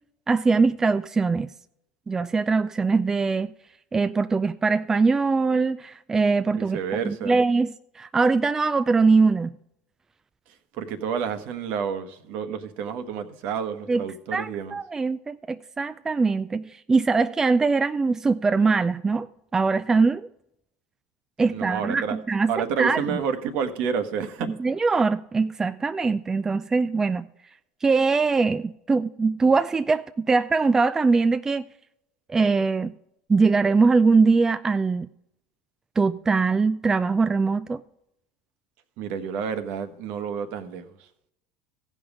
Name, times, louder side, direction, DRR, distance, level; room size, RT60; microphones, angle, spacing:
voice 1, 0.3-1.5 2.1-3.5 3.9-6.8 7.0-9.6 13.9-14.0 14.3-19.3 19.5-20.3 21.4-22.5 22.8-23.0 24.4-27.3 27.8-31.6 32.3-32.9 33.3-35.1 36.0-37.8, right 4 dB, 20° right, 0.4 m, -22 dB
voice 2, 6.5-7.4 10.7-14.8 21.4-22.2 22.5-24.5 39.0-41.1, right 6 dB, 60° right, 1.2 m, -29 dB
15.0 x 5.5 x 5.0 m
hypercardioid pair, 85°, 3 cm